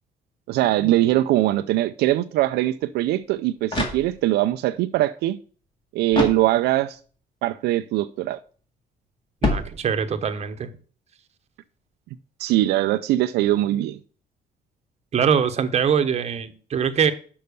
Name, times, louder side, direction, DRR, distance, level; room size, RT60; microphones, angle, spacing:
voice 1, 0.5-5.4 5.9-7.0 7.4-8.4 12.4-14.0, right 15 dB, 80° right, 0.4 m, -22 dB
sound 1, 3.2-4.5 6.1-7.0 9.4-10.3, left 2 dB, 30° left, 2.1 m, -28 dB
voice 2, 9.4-10.7 15.1-17.1, right 7 dB, 40° right, 1.0 m, -23 dB
6.7 x 5.6 x 6.8 m
cardioid pair, 110°, 17 cm